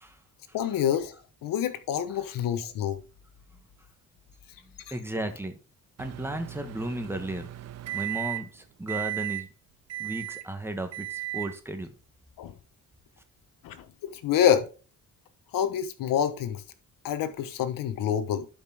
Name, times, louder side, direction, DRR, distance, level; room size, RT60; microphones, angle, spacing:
voice 1, 0.5-1.2 1.4-3.0 12.4-12.6 13.6-14.7 15.5-16.6 17.0-18.5, left 9 dB, 85° left, 1.2 m, -27 dB
voice 2, 4.9-5.6 6.0-7.5 7.9-9.5 10.0-11.9, right 1 dB, 5° right, 1.3 m, -34 dB
Microwave oven, 6.0-8.6 8.9-9.4 9.9-10.5 10.9-11.5, right 16 dB, 50° right, 0.5 m, -35 dB
11.5 x 5.2 x 3.5 m
cardioid pair, 135°, 33 cm